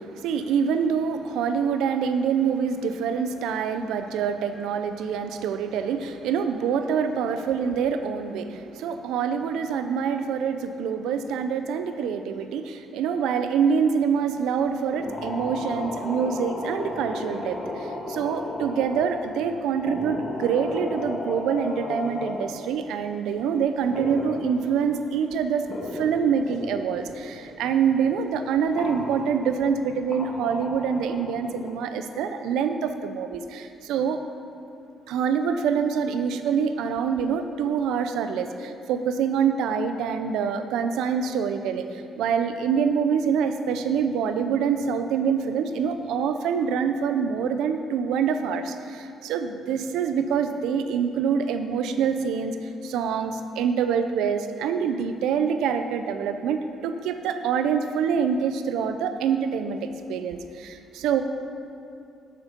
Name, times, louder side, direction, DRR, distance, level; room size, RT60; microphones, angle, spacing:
voice 1, 0.0-25.7 25.9-34.2 35.1-52.6 52.8-61.2, right 6 dB, 90° right, 8 dB, 0.5 m, -25 dB
sound 1, 14.9-19.6 19.8-22.6 23.9-24.7 25.2-25.3 25.5-27.0 27.2-27.6 27.9-28.0 28.7-29.7 30.1-31.7, left 2 dB, 40° left, 1.8 m, -34 dB
8.1 x 7.2 x 5.2 m, 2.5 s
cardioid pair, 90°, 0 cm